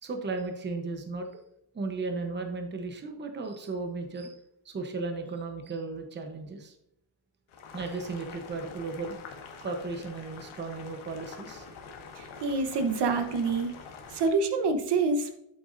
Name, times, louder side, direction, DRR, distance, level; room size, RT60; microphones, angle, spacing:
voice 1, 0.0-1.4 1.7-4.4 4.6-6.7 7.7-9.2 9.6-11.7, right 3 dB, 20° right, 5 dB, 0.9 m, -35 dB
Boiling, 7.5-14.3, left 5 dB, 80° left, 1.6 m, -46 dB
voice 2, 12.2-13.7 14.1-15.3, right 4 dB, 55° right, 7 dB, 1.0 m, -27 dB
8.3 x 7.8 x 2.6 m, 0.80 s
cardioid pair, 155°, 48 cm